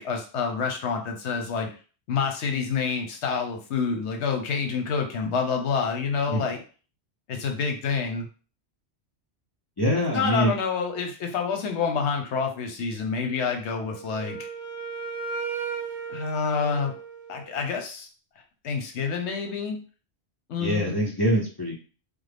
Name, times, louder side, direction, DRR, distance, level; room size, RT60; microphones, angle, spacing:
voice 1, 0.0-1.7 2.1-6.6 7.3-8.3 10.0-14.5 16.1-16.9 17.3-18.1 18.6-19.8 20.5-21.0, left 5 dB, 85° left, 4 dB, 1.0 m, -28 dB
voice 2, 9.8-10.5 20.6-21.7, equal, 30° left, -3 dB, 0.5 m, -24 dB
Wind instrument woodwind instrument, 13.8-17.7, right 5 dB, 50° right, 0.7 m, -35 dB
3.4 x 2.0 x 3.3 m, 0.37 s
omnidirectional pair, 1.1 m